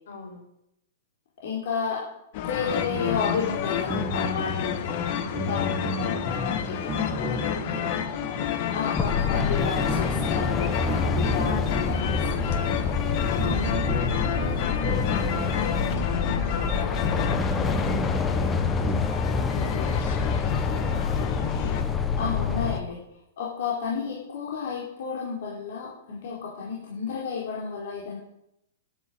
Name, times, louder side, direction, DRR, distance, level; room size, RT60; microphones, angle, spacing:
voice 1, 0.1-0.4 5.1-7.8 8.8-9.3 13.4-14.4 14.7-19.0 19.5-21.7, left 4 dB, 75° left, 2 dB, 7.0 m, -40 dB
voice 2, 1.4-2.1 2.4-4.9 5.5-5.7 5.9-6.8 8.7-12.6 22.1-23.0 23.4-28.2, left 6 dB, 60° left, -5 dB, 4.6 m, -32 dB
sound 1, 2.3-21.8, left 9 dB, 40° left, 1.5 m, -30 dB
sound 2, 2.7-19.0, right 1 dB, 10° right, 1.8 m, -34 dB
sound 3, 8.9-22.8, left 5 dB, 15° left, 1.0 m, -27 dB
11.0 x 10.0 x 8.9 m, 0.82 s
hypercardioid pair, 160°, 0 cm